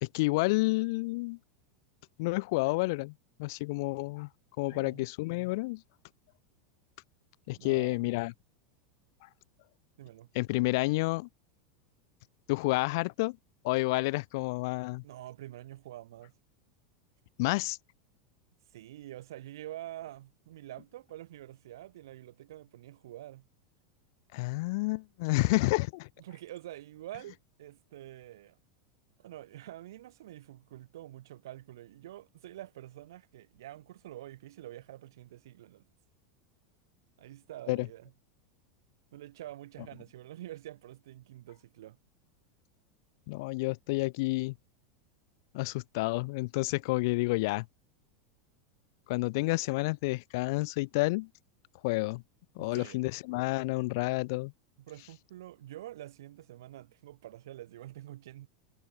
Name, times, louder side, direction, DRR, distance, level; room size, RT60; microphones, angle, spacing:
voice 1, 0.0-1.4 2.2-3.1 3.4-4.3 4.6-5.8 7.5-8.3 10.3-11.3 12.5-13.4 13.6-15.0 17.4-17.8 24.3-26.1 37.7-37.9 43.3-44.5 45.5-47.6 49.1-51.3 51.8-52.2 52.5-54.5, left 24 dB, 60° left, 1.4 m, -29 dB
voice 2, 4.7-5.1 7.5-8.1 10.0-10.3 15.0-16.3 18.7-23.5 25.3-25.6 26.2-28.6 29.2-35.9 37.2-38.1 39.1-42.0 52.6-53.0 54.8-58.5, right 14 dB, 70° right, 4.7 m, -47 dB
hypercardioid pair, 90°, 2 cm